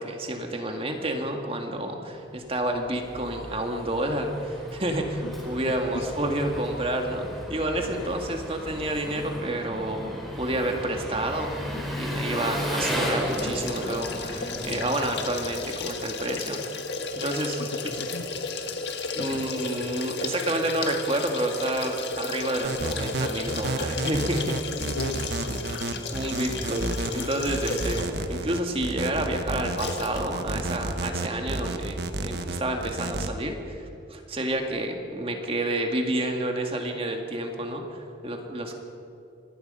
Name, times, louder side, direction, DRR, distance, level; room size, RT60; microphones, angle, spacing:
voice 1, 0.0-11.5 12.0-16.8 17.1-17.6 19.1-24.6 25.9-38.8, right 1 dB, 30° right, 3 dB, 2.0 m, -29 dB
Engine, 2.5-16.1, equal, ahead, 4.1 m, -35 dB
voice 2, 5.2-6.1 7.8-8.2 14.7-14.8 17.6-18.3 19.2-19.5 24.7-25.8 29.2-29.3, left 2 dB, 90° left, 7 dB, 1.7 m, -38 dB
sound 1, 13.3-28.2 28.7-28.8 29.8-30.2 30.5-30.6, left 4 dB, 65° left, 1.8 m, -34 dB
sound 2, 22.6-33.3, right 2 dB, 60° right, 1.3 m, -31 dB
25.5 x 19.5 x 5.6 m, 2.8 s
head